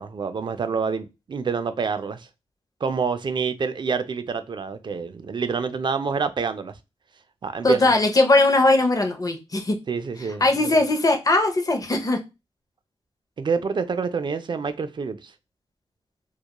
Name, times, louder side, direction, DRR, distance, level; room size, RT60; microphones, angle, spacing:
voice 1, 0.0-2.3 2.8-6.7 7.4-7.8 9.9-10.8 13.4-15.3, right 5 dB, 50° right, 0.3 m, -27 dB
voice 2, 7.6-9.8 10.4-12.2, left 2 dB, 35° left, 0.6 m, -19 dB
2.2 x 2.0 x 2.8 m
cardioid pair, 50°, 10 cm